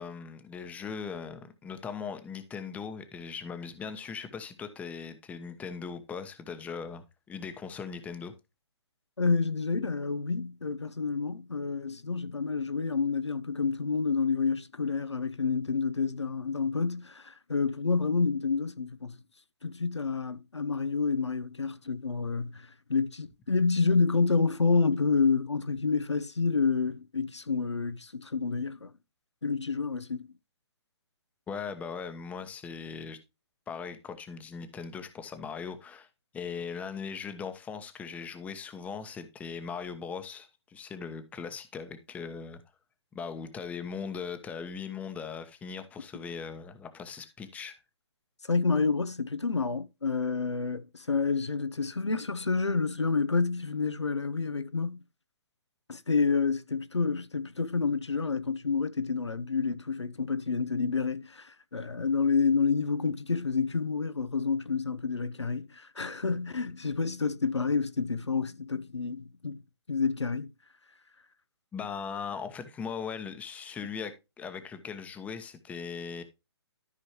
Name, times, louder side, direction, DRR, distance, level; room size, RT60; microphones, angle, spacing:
voice 1, 0.0-8.3 31.5-33.2 33.7-36.1 36.3-42.6 43.1-47.8 71.7-76.2, left 6 dB, 10° left, 1.0 m, -39 dB
voice 2, 9.2-19.1 19.6-28.9 29.4-30.3 48.4-55.0 55.9-69.6 69.9-70.5, left 4 dB, 90° left, 1.0 m, -29 dB
13.5 x 5.4 x 3.0 m
figure-of-eight pair, 140°, 14 cm